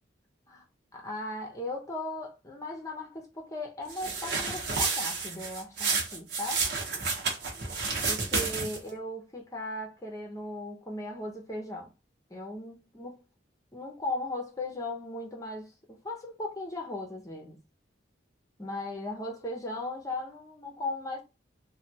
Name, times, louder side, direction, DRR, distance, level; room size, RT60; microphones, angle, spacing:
voice 1, 0.9-6.6 8.1-11.9 12.3-13.3 13.7-17.6 18.6-21.2, left 2 dB, 20° left, 0.8 m, -37 dB
sound 1, 3.9-8.9, right 4 dB, 60° right, 1.0 m, -30 dB
3.3 x 2.3 x 2.8 m
head